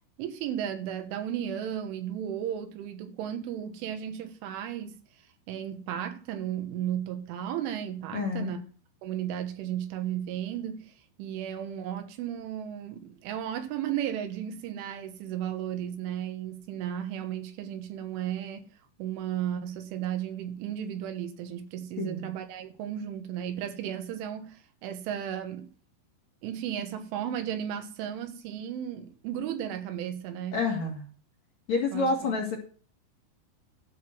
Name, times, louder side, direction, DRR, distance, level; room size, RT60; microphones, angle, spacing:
voice 1, 0.2-5.0 5.5-8.6 9.0-18.7 19.0-25.7 26.4-30.6 31.9-32.1, right 10 dB, 85° right, 3.7 m, -34 dB
voice 2, 8.1-8.6 22.0-22.3 30.5-31.1 31.7-32.6, left 3 dB, 50° left, 2.3 m, -29 dB
12.5 x 5.9 x 6.1 m
omnidirectional pair, 5.5 m